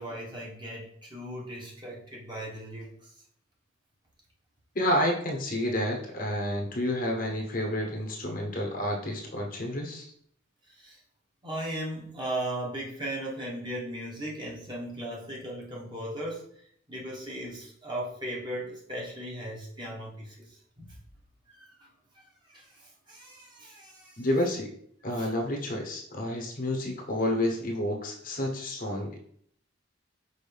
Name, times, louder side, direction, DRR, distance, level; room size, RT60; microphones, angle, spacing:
voice 1, 0.0-3.1 10.7-11.0 11.4-16.5 16.9-21.0 21.5-21.9 22.1-24.3 25.2-25.3, right 1 dB, 20° right, -4 dB, 1.3 m, -37 dB
voice 2, 4.7-10.1 24.2-24.7 25.0-29.2, left 1 dB, 45° left, 1 dB, 1.0 m, -30 dB
5.5 x 5.1 x 3.4 m, 0.64 s
head